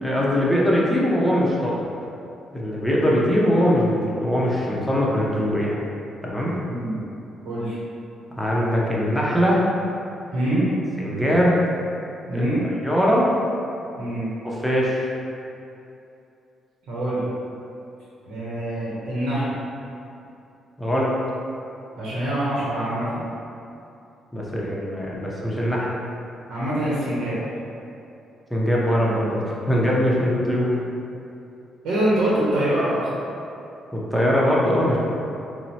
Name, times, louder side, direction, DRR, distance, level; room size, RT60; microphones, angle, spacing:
voice 1, 0.0-1.8 2.5-5.8 6.2-6.5 8.4-9.7 11.0-11.6 12.3-12.4 12.8-13.3 14.4-15.1 20.8-21.1 24.3-25.9 28.5-30.8 33.9-35.0, equal, 5° left, -5 dB, 0.6 m, -21 dB
voice 2, 6.7-7.0 7.4-7.8 10.3-10.7 12.3-12.7 14.0-14.3 16.9-17.2 18.2-19.5 22.0-23.2 26.5-27.4 31.8-33.1, right 1 dB, 80° right, -8 dB, 0.8 m, -24 dB
4.2 x 2.0 x 2.8 m, 2.7 s
cardioid pair, 90°, 0 cm